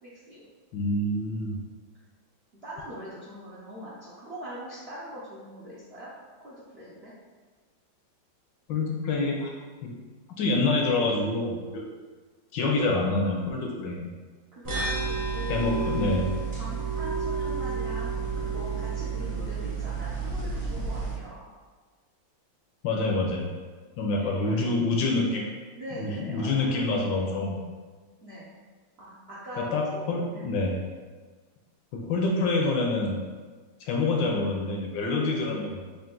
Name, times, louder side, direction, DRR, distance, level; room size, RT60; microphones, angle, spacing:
voice 1, 0.0-0.4 2.6-6.1 6.4-7.1 14.6-15.9 16.6-18.1 18.5-21.4 24.0-24.6 25.8-26.8 28.2-28.4 29.0-30.0 30.3-30.4, equal, 75° right, -9 dB, 0.5 m, -41 dB
voice 2, 0.7-1.6 8.7-9.5 9.8-9.9 10.4-11.8 12.5-14.1 15.5-16.3 22.8-23.5 24.0-25.5 25.9-27.6 29.6-30.8 31.9-33.2 33.8-35.9, left 2 dB, 75° left, 0 dB, 1.2 m, -27 dB
sound 1, 14.6-21.1, right 5 dB, 30° right, 0.6 m, -30 dB
3.8 x 2.5 x 3.7 m, 1.4 s
omnidirectional pair, 2.2 m